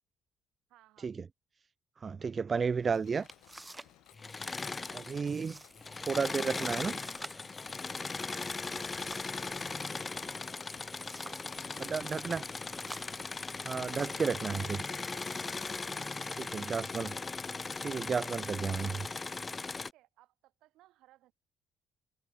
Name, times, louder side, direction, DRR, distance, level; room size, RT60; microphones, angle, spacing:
voice 1, 0.7-1.1 4.8-5.1 8.3-10.7 11.2-12.5 14.1-15.6 15.9-17.1 19.8-21.3, right 16 dB, 75° right, 3.8 m, -62 dB
voice 2, 2.0-3.3 4.9-5.6 6.0-6.9 11.9-12.4 13.6-14.8 16.5-17.1 17.8-19.1, right 5 dB, 40° right, 0.5 m, -32 dB
sound 1, 2.8-2.9 3.3-4.0 4.3-4.8 5.3-5.8 6.1-6.2 6.8-9.5 10.5-11.5 11.9-12.2 12.7-14.4 15.2-15.3 15.9-16.4, right 2 dB, 15° right, 1.5 m, -51 dB
Mechanisms, 2.9-15.1, left 19 dB, 75° left, 2.1 m, -62 dB
Engine / Mechanisms, 4.1-5.5 5.8-19.9, left 4 dB, 30° left, 1.0 m, -38 dB
hypercardioid pair, 50°, 0 cm